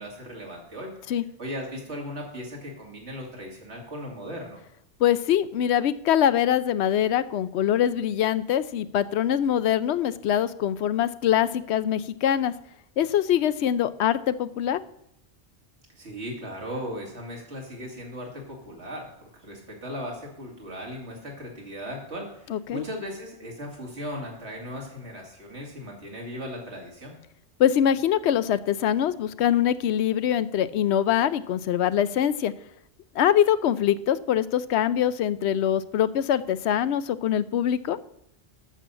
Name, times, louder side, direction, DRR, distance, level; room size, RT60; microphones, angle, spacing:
voice 1, 0.0-4.6 15.9-27.1, equal, 80° right, -1 dB, 2.7 m, -37 dB
voice 2, 5.0-12.5 13.0-14.8 22.5-22.8 27.6-32.5 33.2-38.0, left 10 dB, 75° left, 15 dB, 0.8 m, -23 dB
8.6 x 7.0 x 6.9 m, 0.77 s
omnidirectional pair, 1.1 m